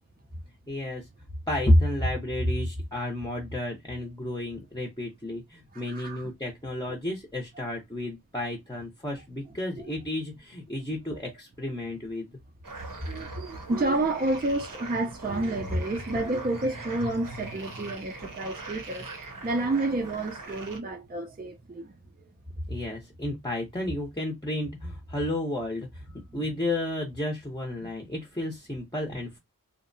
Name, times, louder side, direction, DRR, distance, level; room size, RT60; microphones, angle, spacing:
voice 1, 0.7-1.1 1.5-12.3 22.7-29.4, left 1 dB, 10° left, 0.7 m, -31 dB
voice 2, 5.7-6.3 12.9-19.1 19.4-21.9 26.3-26.6, right 2 dB, 25° right, 0.5 m, -30 dB
sound 1, 12.6-20.8, right 3 dB, 65° right, 0.7 m, -42 dB
2.7 x 2.1 x 2.5 m
wide cardioid pair, 55°, 35 cm